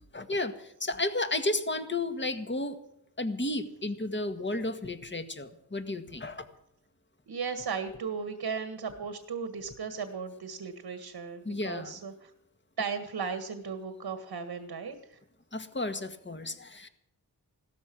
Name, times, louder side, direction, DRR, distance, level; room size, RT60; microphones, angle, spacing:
voice 1, 0.1-2.8 3.2-6.5 11.4-12.0 15.5-16.9, left 2 dB, 30° left, 8 dB, 1.8 m, -33 dB
voice 2, 7.3-12.3 12.8-15.2, right 5 dB, 75° right, 8 dB, 1.8 m, -36 dB
16.5 x 13.5 x 6.1 m, 0.79 s
cardioid pair, 55°, 39 cm